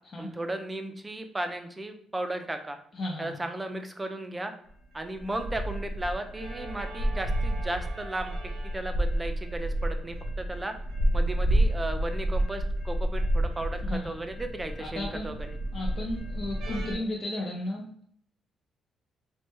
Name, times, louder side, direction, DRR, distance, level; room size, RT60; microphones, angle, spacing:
voice 1, 0.2-2.8 3.2-4.5 4.9-8.4 8.6-10.7 11.1-15.3, right 1 dB, 20° right, 6 dB, 0.4 m, -35 dB
voice 2, 2.9-3.3 13.9-14.0 14.8-15.3 15.7-18.0, left 1 dB, 40° left, -2 dB, 0.5 m, -34 dB
Loco Passing, 4.8-17.0, right 1 dB, 85° right, 0.6 m, -30 dB
3.1 x 2.2 x 3.0 m, 0.65 s
cardioid pair, 90°, 0 cm